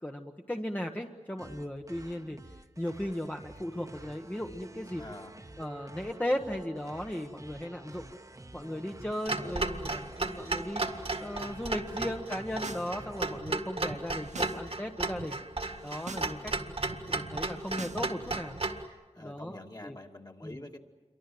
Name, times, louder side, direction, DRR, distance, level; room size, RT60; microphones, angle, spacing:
voice 1, 0.0-5.0 5.6-8.1 8.5-15.4 15.8-16.6 17.1-18.6 19.2-20.0 20.4-20.6, equal, 15° left, 2 dB, 1.2 m, -37 dB
sound 1, 1.4-13.4, right 1 dB, 30° right, 1.3 m, -49 dB
voice 2, 5.0-5.3 9.1-10.1 19.1-20.8, left 1 dB, 35° left, 2 dB, 2.3 m, -47 dB
Clock, 9.3-18.8, right 3 dB, 55° right, 1.9 m, -34 dB
sound 2, 12.4-12.9 13.2-14.6 14.9-15.3 15.7-16.3 16.6-18.6, right 3 dB, 75° right, 1.2 m, -45 dB
28.0 x 24.0 x 7.8 m, 1.3 s
wide cardioid pair, 55°, 12 cm